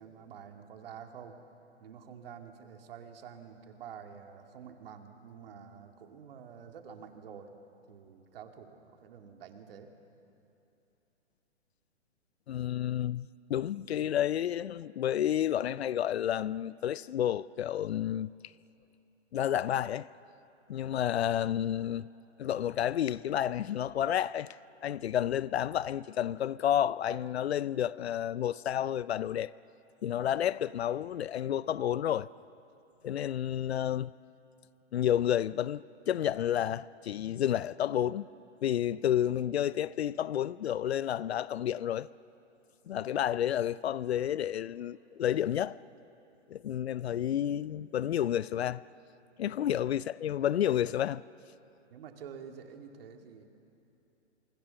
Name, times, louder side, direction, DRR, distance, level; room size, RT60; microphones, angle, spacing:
voice 1, 0.0-1.4 1.8-7.5 7.9-9.9 49.4-49.5 51.9-53.4, right 7 dB, 50° right, 2.5 m, -48 dB
voice 2, 12.5-18.3 19.3-20.1 20.7-22.1 22.4-24.6 24.8-29.5 30.0-32.3 33.0-34.1 34.9-38.3 38.6-42.1 42.9-45.8 46.5-48.8 49.4-51.2, left 10 dB, 60° left, 0.5 m, -30 dB
26.0 x 25.0 x 7.0 m
hypercardioid pair, 140°, 36 cm